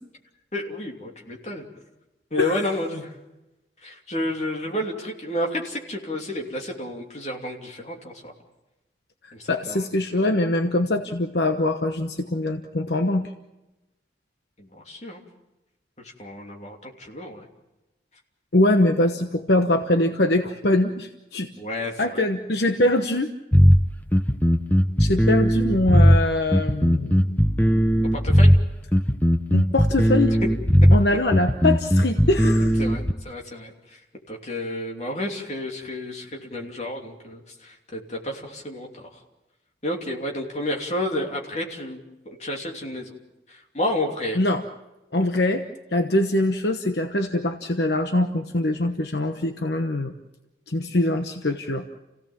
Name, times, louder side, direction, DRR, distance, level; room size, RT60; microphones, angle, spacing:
voice 1, 0.5-1.7 2.3-3.2 3.8-8.3 9.3-9.9 14.6-15.2 16.0-17.4 21.6-22.2 28.1-28.5 32.8-34.0 34.3-39.2 39.8-42.0 42.2-43.1 43.5-44.4, left 1 dB, 35° left, 1 dB, 3.0 m, -31 dB
voice 2, 9.5-13.3 18.5-21.5 22.0-23.3 25.0-27.4 29.5-30.3 30.9-32.7 44.4-44.6 45.1-45.6 45.9-50.1 50.7-52.0, left 1 dB, 65° left, 6 dB, 1.1 m, -23 dB
sound 1, 23.5-33.1, equal, 10° left, 0.7 m, -18 dB
29.5 x 16.5 x 7.3 m, 1.0 s
head